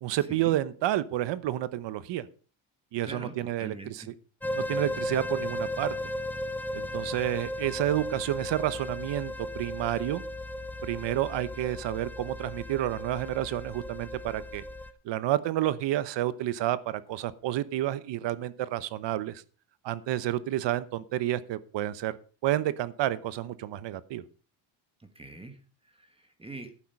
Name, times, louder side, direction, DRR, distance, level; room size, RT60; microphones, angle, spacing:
voice 1, 0.0-2.3 2.9-4.1 4.5-5.9 6.7-10.2 10.8-14.6 15.0-19.4 19.8-22.1 22.4-24.2, right 13 dB, 65° right, 16 dB, 1.0 m, -30 dB
voice 2, 3.0-4.1 25.0-25.6 25.8-26.7, right 2 dB, 10° right, 7 dB, 1.5 m, -44 dB
sound 1, 4.4-14.9, left 1 dB, 5° left, 0.8 m, -35 dB
11.5 x 9.3 x 5.4 m, 0.39 s
cardioid pair, 135°, 46 cm